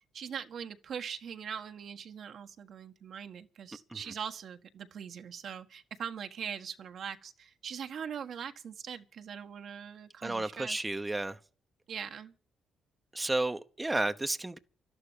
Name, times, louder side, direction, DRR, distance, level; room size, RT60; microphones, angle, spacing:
voice 1, 0.1-10.8 11.9-12.3, right 7 dB, 60° right, 1.5 m, -41 dB
voice 2, 10.2-11.4 13.1-14.6, right 2 dB, 15° right, 0.9 m, -32 dB
12.0 x 11.5 x 8.8 m
cardioid pair, 90°, 0 cm